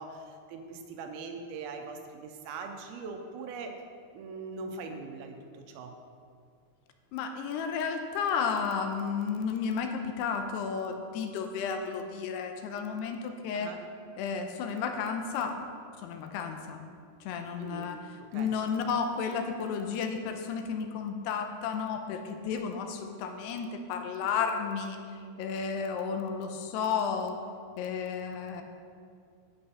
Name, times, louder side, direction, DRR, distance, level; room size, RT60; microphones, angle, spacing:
voice 1, 0.0-3.7 4.1-5.9 13.5-13.8 17.6-17.9 18.3-18.5, right 4 dB, 75° right, 4 dB, 2.5 m, -41 dB
voice 2, 7.1-13.7 14.2-15.6 16.0-16.9 17.2-18.0 18.3-27.5 27.8-28.6, left 6 dB, 90° left, 6 dB, 2.7 m, -32 dB
8.5 x 7.8 x 5.5 m, 2.3 s
omnidirectional pair, 4.7 m